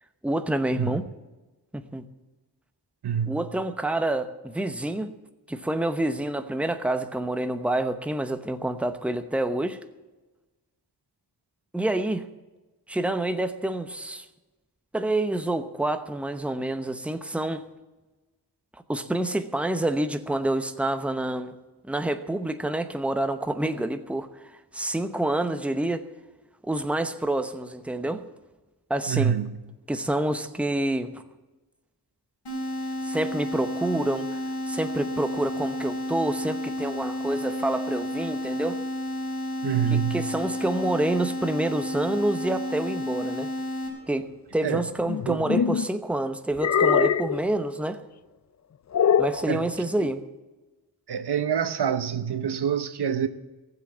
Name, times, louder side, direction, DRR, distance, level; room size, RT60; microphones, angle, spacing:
voice 1, 0.2-1.0 1.7-2.1 3.3-5.1 5.5-9.8 11.7-12.2 12.9-14.2 14.9-17.6 18.9-21.6 21.8-26.0 26.6-28.2 28.9-29.4 29.9-31.2 33.0-38.8 39.9-43.5 44.1-48.0 49.2-50.2, right 1 dB, 5° right, 0.9 m, -28 dB
voice 2, 3.0-3.4 29.1-29.5 39.6-40.3 44.6-44.9 45.3-45.4 49.5-49.7 50.0-50.1 51.1-53.3, right 8 dB, 70° right, 0.9 m, -26 dB
sound 1, 32.5-43.9, left 1 dB, 75° left, 4.8 m, -31 dB
sound 2, 45.1-45.9 46.6-47.4 48.9-49.4, left 8 dB, 45° left, 0.4 m, -22 dB
15.5 x 7.7 x 8.4 m
wide cardioid pair, 85°, 41 cm